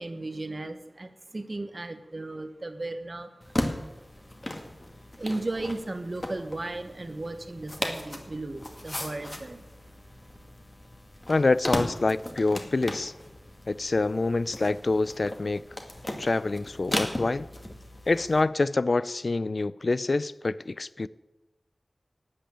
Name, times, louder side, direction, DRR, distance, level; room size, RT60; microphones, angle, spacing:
voice 1, 0.0-3.3 5.2-9.7, right 2 dB, 45° right, 9 dB, 1.3 m, -35 dB
sound 1, 3.4-18.4, left 1 dB, 30° left, 2.2 m, -36 dB
voice 2, 11.3-13.1 13.7-15.6 16.2-17.5 18.1-21.1, left 3 dB, 60° left, 18 dB, 0.4 m, -26 dB
12.5 x 8.6 x 8.9 m, 1.1 s
wide cardioid pair, 70°, 0 cm